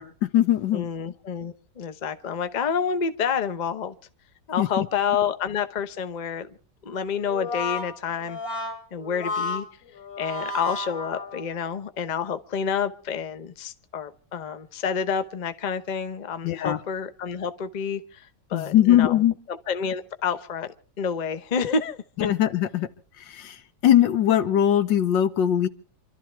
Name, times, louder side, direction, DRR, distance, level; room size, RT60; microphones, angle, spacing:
voice 1, 0.0-0.9 4.6-4.9 16.4-16.8 18.5-19.3 22.2-22.9 23.3-23.6 23.8-25.7, left 11 dB, 85° left, 11 dB, 1.6 m, -21 dB
voice 2, 0.7-3.9 4.5-6.6 6.8-9.7 10.2-19.2 19.5-22.0, left 6 dB, 35° left, 10 dB, 0.7 m, -29 dB
Brass instrument, 7.2-11.7, left 3 dB, 50° left, 3.4 m, -32 dB
28.0 x 12.5 x 3.4 m, 0.40 s
omnidirectional pair, 2.0 m